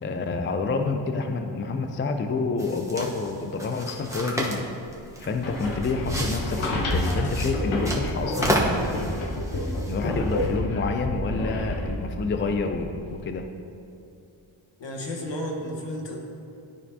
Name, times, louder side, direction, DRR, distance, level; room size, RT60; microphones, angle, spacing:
voice 1, 0.0-4.7 5.2-13.5, left 4 dB, 30° left, 6 dB, 0.3 m, -29 dB
sound 1, 2.6-10.5, right 1 dB, 5° right, 1.0 m, -32 dB
sound 2, 5.2-13.2, left 1 dB, 80° left, 1.2 m, -29 dB
voice 2, 14.8-16.2, left 1 dB, 65° left, 0 dB, 1.3 m, -32 dB
13.0 x 4.5 x 2.8 m, 2.6 s
wide cardioid pair, 100°, 48 cm